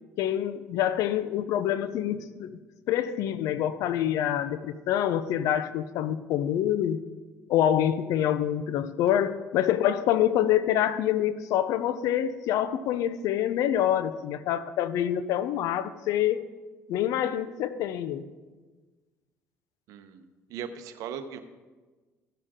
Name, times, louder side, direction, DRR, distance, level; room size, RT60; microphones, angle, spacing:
voice 1, 0.2-2.6 2.9-7.0 7.5-16.5 16.9-18.3, left 11 dB, 75° left, 14 dB, 0.6 m, -26 dB
voice 2, 19.9-20.2 20.5-21.4, right 7 dB, 75° right, 9 dB, 0.8 m, -38 dB
15.0 x 6.8 x 3.7 m, 1.3 s
supercardioid pair, 85°, 6 cm